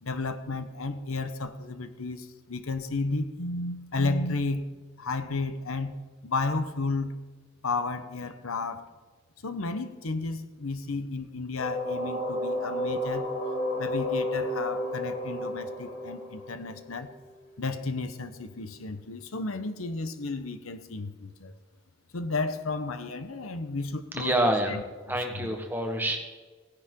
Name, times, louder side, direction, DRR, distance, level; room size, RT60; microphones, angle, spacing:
voice 1, 0.0-4.7 5.0-6.0 6.2-7.1 7.6-8.9 9.4-13.3 13.8-17.1 17.6-21.5 22.1-24.8 25.3-25.5, left 3 dB, 85° left, 10 dB, 1.0 m, -32 dB
sound 1, 11.6-17.3, left 1 dB, 60° left, 3.1 m, -31 dB
voice 2, 24.1-24.8 25.1-26.2, right 1 dB, 10° right, 3 dB, 1.3 m, -27 dB
16.5 x 10.5 x 3.8 m, 1.4 s
head